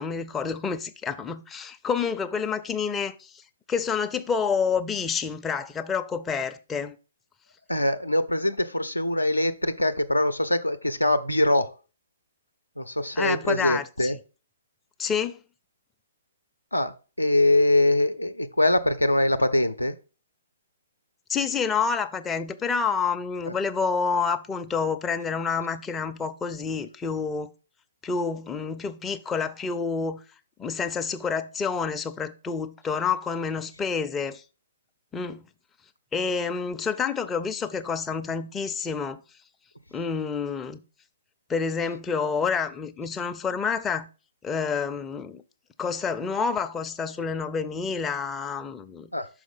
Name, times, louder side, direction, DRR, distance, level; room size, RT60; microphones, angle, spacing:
voice 1, 0.0-3.4 3.7-7.0 13.2-14.1 15.0-15.4 21.3-27.5 28.0-30.2 30.6-34.4 35.1-35.4 36.1-39.2 39.9-40.8 41.5-44.1 44.4-45.4 45.8-49.1, left 5 dB, 15° left, 0.4 m, -28 dB
voice 2, 7.7-11.7 12.8-14.2 16.7-16.9 17.2-19.9 23.5-23.6 49.1-49.3, left 1 dB, 90° left, 0.6 m, -23 dB
6.1 x 4.9 x 5.4 m
figure-of-eight pair, 125°, 0 cm